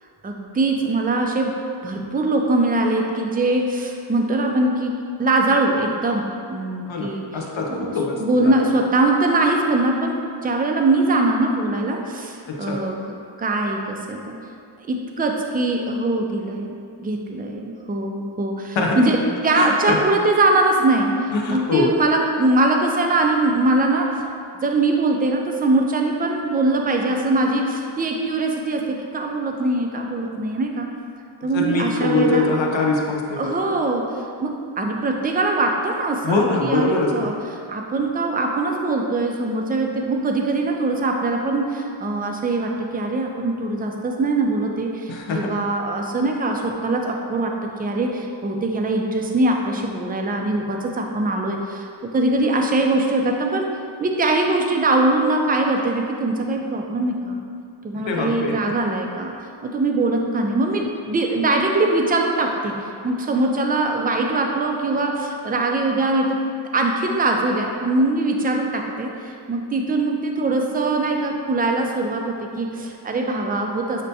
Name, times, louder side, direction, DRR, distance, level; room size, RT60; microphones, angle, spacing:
voice 1, 0.2-1.6 1.8-7.3 7.7-7.9 8.2-10.2 10.4-13.0 13.4-14.4 14.9-21.1 21.5-24.3 24.6-30.9 31.4-32.4 33.4-34.1 34.4-37.3 37.7-47.5 47.8-53.7 54.0-57.4 57.8-59.3 59.6-62.7 63.0-66.4 66.7-74.0, right 2 dB, 20° right, 2 dB, 0.3 m, -22 dB
voice 2, 6.9-8.7 12.5-12.8 18.8-19.2 19.5-20.0 21.3-22.0 31.4-33.7 36.2-37.3 45.1-45.5 57.9-58.8, left 3 dB, 70° left, 0 dB, 0.7 m, -23 dB
6.4 x 2.2 x 2.7 m, 2.4 s
wide cardioid pair, 60°, 48 cm